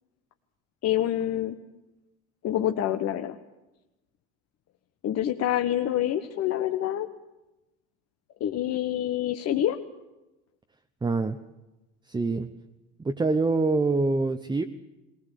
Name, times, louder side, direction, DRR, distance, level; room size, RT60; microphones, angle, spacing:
voice 1, 0.8-1.5 2.4-3.4 5.0-7.1 8.4-9.8, left 11 dB, 50° left, 5 dB, 1.2 m, -26 dB
voice 2, 11.0-11.4 12.1-12.5 13.0-14.6, right 3 dB, 15° right, 6 dB, 0.9 m, -25 dB
19.0 x 19.0 x 8.4 m, 1.0 s
supercardioid pair, 90°, 33 cm